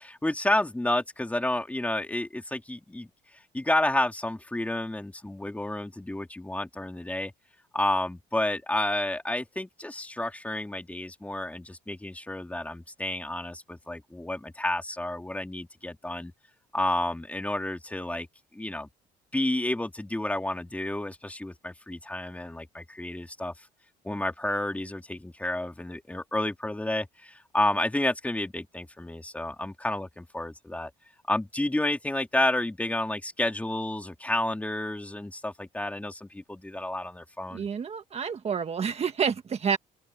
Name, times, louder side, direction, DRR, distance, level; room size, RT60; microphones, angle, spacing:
voice 1, 0.0-3.1 3.5-7.3 7.7-16.3 16.7-18.3 18.5-18.9 19.3-23.5 24.0-30.9 31.3-37.6, left 1 dB, 10° left, 3.4 m, -30 dB
voice 2, 37.5-39.8, right 6 dB, 40° right, 1.7 m, -29 dB
open air
cardioid pair, 110°, 17 cm